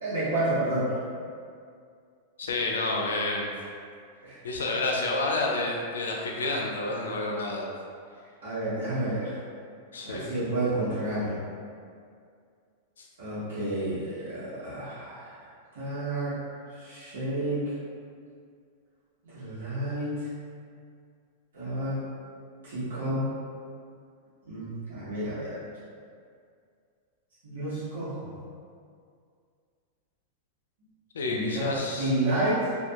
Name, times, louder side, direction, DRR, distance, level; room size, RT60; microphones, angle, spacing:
voice 1, 0.0-1.0 4.2-4.4 8.4-9.4 10.0-11.3 13.2-15.4 15.7-17.7 19.2-20.3 21.5-22.0 22.6-23.3 24.5-25.6 27.4-28.3 31.2-32.7, right 1 dB, 85° right, -11 dB, 1.0 m, -30 dB
voice 2, 2.4-3.5 4.4-7.7 9.9-10.3 13.0-13.1 31.1-32.1, left 2 dB, 90° left, -1 dB, 0.4 m, -29 dB
2.6 x 2.3 x 2.4 m, 2.3 s
hypercardioid pair, 115°, 0 cm